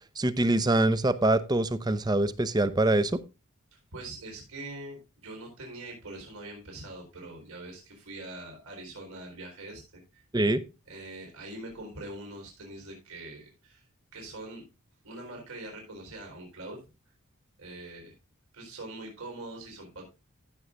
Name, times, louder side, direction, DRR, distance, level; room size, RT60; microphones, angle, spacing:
voice 1, 0.2-3.2 10.3-10.6, right 2 dB, 20° right, 15 dB, 0.6 m, -24 dB
voice 2, 3.9-10.2 10.9-13.8 14.1-14.6 15.0-16.8 17.1-17.2 17.6-18.1 18.5-20.1, right 2 dB, 85° right, 0 dB, 4.1 m, -43 dB
15.5 x 7.0 x 2.5 m, 0.28 s
head